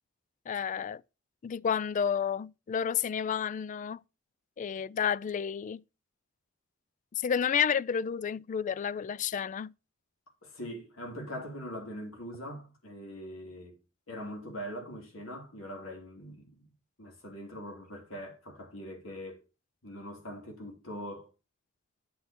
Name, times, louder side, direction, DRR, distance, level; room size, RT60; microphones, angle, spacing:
voice 1, 0.5-1.0 1.4-4.0 4.6-5.8 7.1-9.7, left 7 dB, 40° left, 0.3 m, -30 dB
voice 2, 10.4-13.8 14.1-16.7 17.0-19.4 19.8-21.3, equal, 75° left, 3.1 m, -42 dB
9.2 x 8.0 x 2.9 m
head